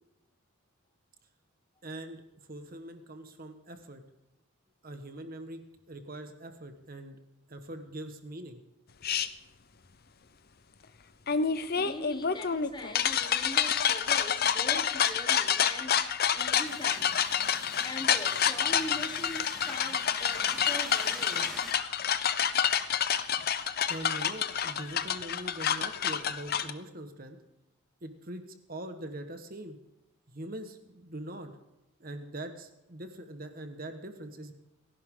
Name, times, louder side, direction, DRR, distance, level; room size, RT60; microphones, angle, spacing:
voice 1, 1.8-2.2 2.5-4.0 4.8-5.6 5.9-7.2 7.5-8.6 23.9-27.4 28.0-29.8 30.3-31.5 32.0-34.5, right 1 dB, 40° right, 1.4 m, -42 dB
sound 1, 9.0-9.3 11.3-26.7, left 8 dB, 45° left, 0.6 m, -28 dB
voice 2, 11.7-17.3 17.8-21.7, left 1 dB, 20° left, 1.2 m, -42 dB
sound 2, 16.6-21.7, equal, ahead, 2.1 m, -46 dB
28.5 x 11.5 x 3.8 m
head